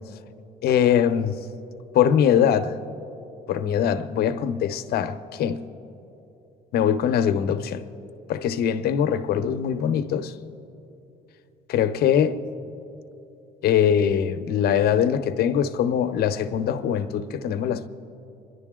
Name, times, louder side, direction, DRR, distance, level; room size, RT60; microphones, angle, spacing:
voice 1, 0.6-1.4 1.9-2.7 3.5-5.6 6.7-7.8 8.3-10.3 11.7-12.4 13.6-17.9, left 8 dB, 70° left, 0.8 m, -22 dB
27.5 x 11.0 x 3.7 m
cardioid pair, 110°, 17 cm